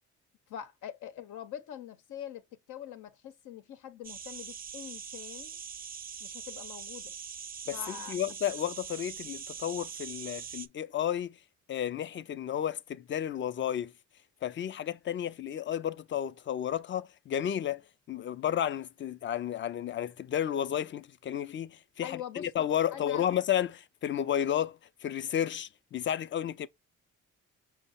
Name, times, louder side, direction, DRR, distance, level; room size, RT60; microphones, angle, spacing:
voice 1, 0.5-2.4 2.7-5.6 6.2-7.1 7.7-8.2 22.0-22.5 22.9-23.3, left 10 dB, 80° left, 0.8 m, -43 dB
sound 1, 4.0-10.7, right 7 dB, 30° right, 0.5 m, -42 dB
voice 2, 7.7-11.4 11.7-13.9 14.4-17.8 18.1-26.7, left 10 dB, 40° left, 0.4 m, -32 dB
5.6 x 2.1 x 4.0 m
cardioid pair, 90°, 30 cm